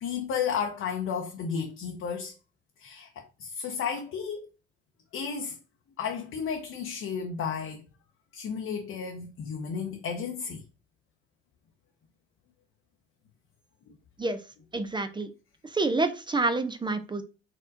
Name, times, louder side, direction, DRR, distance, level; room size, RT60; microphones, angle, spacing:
voice 1, 0.0-2.3 2.8-4.5 5.1-5.5 6.0-7.8 8.3-10.6, left 6 dB, 45° left, 0.7 m, -33 dB
voice 2, 14.7-15.3 15.7-17.2, right 3 dB, 15° right, 0.4 m, -28 dB
4.2 x 3.6 x 2.5 m
figure-of-eight pair, 50°, 29 cm